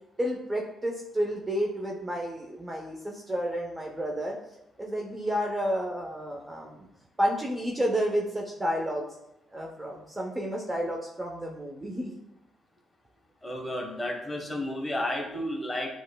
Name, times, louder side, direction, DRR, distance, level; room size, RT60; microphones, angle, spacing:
voice 1, 0.2-4.3 4.8-6.9 7.2-9.0 9.5-12.1, equal, 15° right, -1 dB, 0.6 m, -30 dB
voice 2, 13.4-15.9, left 1 dB, 15° left, 0 dB, 1.2 m, -32 dB
7.5 x 3.1 x 2.2 m, 0.85 s
cardioid pair, 90°, 0 cm